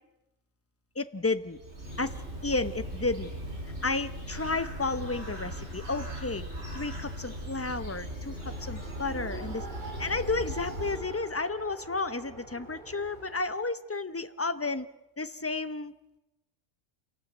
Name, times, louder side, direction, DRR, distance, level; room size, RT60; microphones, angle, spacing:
voice 1, 1.0-1.6 2.0-2.2 2.4-3.3 3.8-6.5 6.7-9.7 10.0-14.9 15.2-15.9, left 3 dB, 15° left, 12 dB, 0.7 m, -32 dB
Bird, 1.4-11.4, equal, 55° right, 5.6 m, -39 dB
Race car auto racing, 8.4-13.6, right 2 dB, 35° right, 2.8 m, -45 dB
27.0 x 18.0 x 8.1 m, 0.97 s
omnidirectional pair, 1.4 m